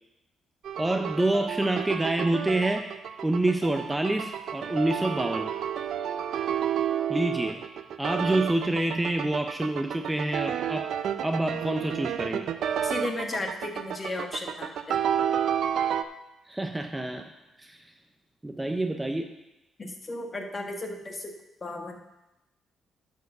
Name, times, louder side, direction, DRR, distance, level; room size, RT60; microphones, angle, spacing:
sound 1, 0.6-16.0, right 9 dB, 70° right, 0.5 m, -31 dB
voice 1, 0.8-2.8 3.2-5.5 7.1-7.6 8.0-10.9 11.2-12.5 16.5-17.3 17.6-17.8 18.4-19.3, right 2 dB, 10° right, 5 dB, 0.6 m, -27 dB
voice 2, 12.8-15.0 19.8-21.3 21.6-22.0, left 2 dB, 30° left, 3 dB, 1.4 m, -34 dB
10.0 x 4.6 x 6.6 m, 0.95 s
cardioid pair, 90°, 0 cm